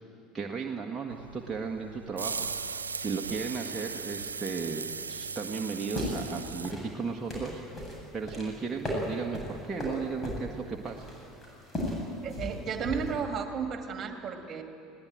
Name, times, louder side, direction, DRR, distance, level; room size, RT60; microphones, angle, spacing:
voice 1, 0.3-7.8 8.1-11.1, right 5 dB, 20° right, 0 dB, 1.7 m, -35 dB
sound 1, 1.1-6.7, right 5 dB, 85° right, 0.5 m, -38 dB
sound 2, 5.8-13.2, left 1 dB, 30° left, 8.0 m, -37 dB
voice 2, 12.2-14.6, right 6 dB, 40° right, 5 dB, 2.4 m, -33 dB
21.0 x 17.5 x 9.1 m, 2.6 s
figure-of-eight pair, 70°, 0 cm